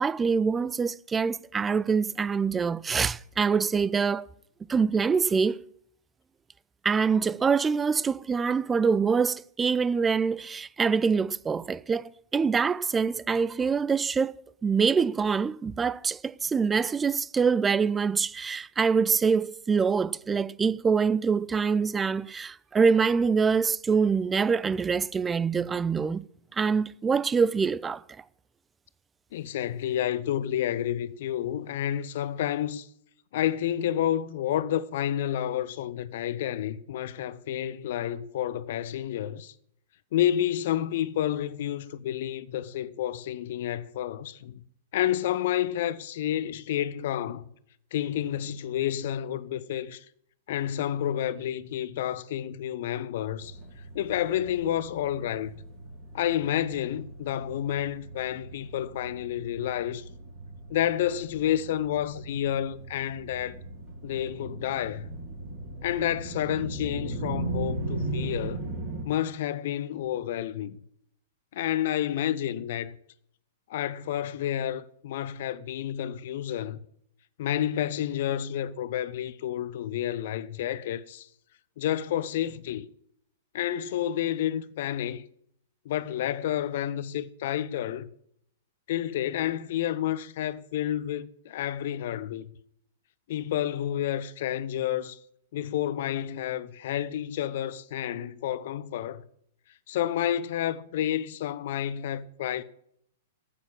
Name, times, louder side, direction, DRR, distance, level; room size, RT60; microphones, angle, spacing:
voice 1, 0.0-4.3 4.7-5.7 6.8-14.4 14.6-26.3 26.5-28.0, right 5 dB, 15° right, 0.4 m, -25 dB
voice 2, 29.3-32.9 33.3-39.5 40.1-44.6 44.9-47.4 47.9-50.0 50.5-53.6 53.9-55.6 56.1-60.0 60.7-63.6 64.0-65.1 65.8-68.6 69.1-70.8 71.5-72.9 73.7-76.8 77.4-81.3 81.8-82.9 83.5-85.2 85.8-88.1 88.9-92.6 93.3-95.2 95.5-99.2 99.9-102.6, left 11 dB, 55° left, 0.7 m, -30 dB
sound 1, 53.4-69.0, right 2 dB, 35° right, 4.1 m, -38 dB
9.5 x 8.7 x 7.0 m
figure-of-eight pair, 105°, 0 cm